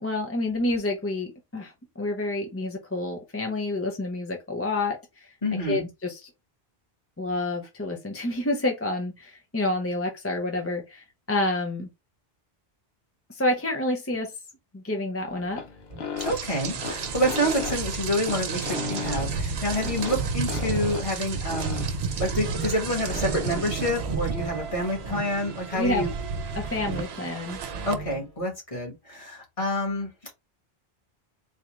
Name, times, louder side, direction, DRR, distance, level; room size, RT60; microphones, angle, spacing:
voice 1, 0.0-6.3 7.2-11.9 13.3-14.4 14.7-15.6 25.7-26.0 26.5-27.6, left 2 dB, 20° left, 0.5 m, -29 dB
voice 2, 5.4-5.8 16.2-21.8 22.2-26.1 27.9-30.3, equal, 35° left, 1.4 m, -28 dB
sound 1, 15.3-23.8, left 5 dB, 75° left, 1.0 m, -37 dB
sound 2, 15.9-16.0 16.6-16.8 18.0-19.0 19.5-20.3 22.3-23.5 23.9-24.3 24.9-25.3 25.7-27.2 27.5-28.4, right 2 dB, 40° right, 1.0 m, -40 dB
Rain, 16.2-27.9, right 5 dB, 90° right, 0.9 m, -32 dB
4.0 x 2.4 x 3.0 m
omnidirectional pair, 1.0 m